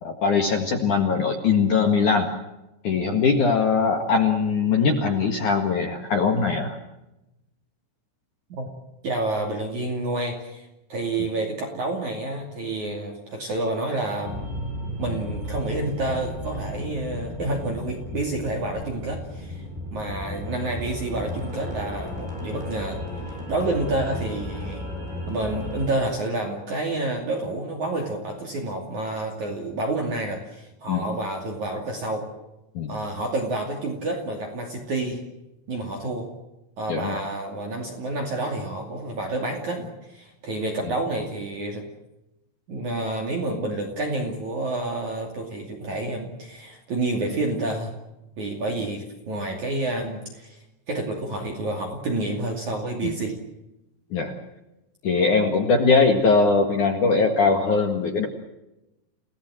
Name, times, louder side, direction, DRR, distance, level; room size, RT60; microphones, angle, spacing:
voice 1, 0.0-2.3 2.8-6.8 11.2-11.3 30.9-31.1 32.7-32.9 36.9-37.2 53.0-53.1 54.1-54.4 55.0-58.3, left 4 dB, 55° left, 3 dB, 2.4 m, -21 dB
voice 2, 9.0-14.5 15.0-24.9 25.3-32.3 32.9-35.2 35.7-36.3 36.8-41.8 42.7-47.9 48.4-53.3, right 2 dB, 45° right, 2 dB, 3.4 m, -29 dB
sound 1, 14.2-25.9, left 1 dB, 10° right, 7.1 m, -34 dB
30.0 x 17.5 x 7.6 m, 0.95 s
omnidirectional pair, 5.7 m